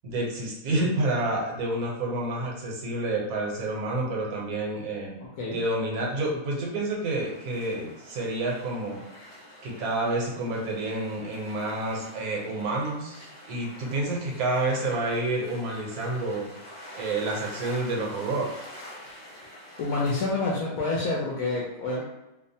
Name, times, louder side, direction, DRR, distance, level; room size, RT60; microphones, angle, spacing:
voice 1, 0.0-5.2 5.5-9.0 9.6-16.5 16.9-18.7, right 2 dB, 75° right, -2 dB, 1.2 m, -29 dB
sound 1, 7.0-20.3, left 1 dB, 30° left, 0.7 m, -46 dB
voice 2, 19.8-22.0, left 3 dB, 70° left, -5 dB, 1.0 m, -28 dB
2.8 x 2.1 x 2.6 m, 0.96 s
omnidirectional pair, 1.6 m